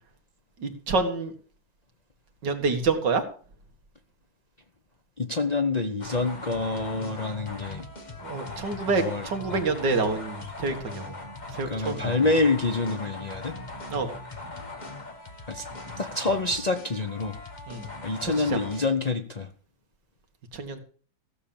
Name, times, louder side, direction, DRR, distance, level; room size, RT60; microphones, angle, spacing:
voice 1, 0.6-1.3 2.4-3.2 8.2-11.1 11.5-12.1 13.9-14.1 17.7-17.9 18.5-18.6 20.5-20.8, right 4 dB, 60° right, 6 dB, 2.3 m, -27 dB
voice 2, 5.2-7.9 8.9-9.6 11.6-13.5 15.5-15.6 16.0-17.3 18.0-19.5, left 3 dB, 65° left, 7 dB, 0.4 m, -27 dB
sound 1, 6.0-18.9, left 2 dB, 25° left, 1.5 m, -40 dB
16.0 x 7.2 x 7.1 m, 0.43 s
omnidirectional pair, 2.2 m